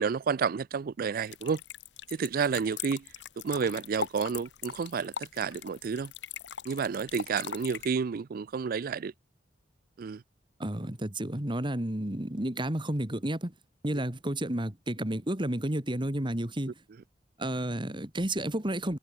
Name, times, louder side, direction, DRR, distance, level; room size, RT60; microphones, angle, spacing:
voice 1, 0.0-1.6 2.1-3.0 3.4-6.1 6.7-9.1 10.0-10.2, right 6 dB, 55° right, 0.4 m, -30 dB
sound 1, 1.3-7.9, left 8 dB, 75° left, 0.9 m, -40 dB
voice 2, 10.6-13.5 13.8-16.7 17.4-19.0, right 1 dB, 25° right, 2.2 m, -31 dB
head